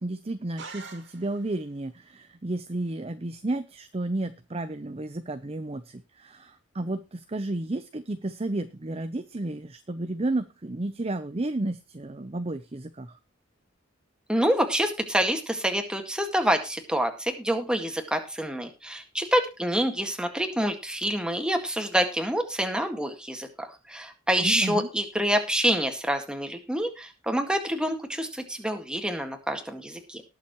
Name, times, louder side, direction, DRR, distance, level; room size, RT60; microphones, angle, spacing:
voice 1, 0.0-13.2 24.4-24.9, right 2 dB, 30° right, 11 dB, 0.7 m, -32 dB
sound 1, 0.6-1.7, right 4 dB, 60° right, 2.5 m, -44 dB
voice 2, 14.3-30.2, equal, 5° right, 5 dB, 1.9 m, -27 dB
19.0 x 7.2 x 3.1 m, 0.28 s
head